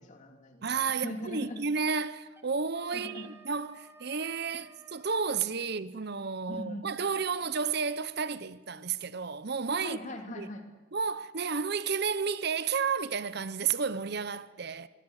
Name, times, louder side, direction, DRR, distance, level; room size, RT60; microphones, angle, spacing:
voice 1, 0.0-1.6 2.9-3.3 4.5-4.6 6.5-6.9 9.8-10.6, left 1 dB, 35° left, 3.0 m, -41 dB
voice 2, 0.6-10.0 10.4-10.5 10.9-14.9, right 5 dB, 55° right, 0.8 m, -32 dB
Wind instrument woodwind instrument, 2.3-5.4, right 2 dB, 10° right, 1.8 m, -56 dB
26.5 x 22.5 x 6.6 m
head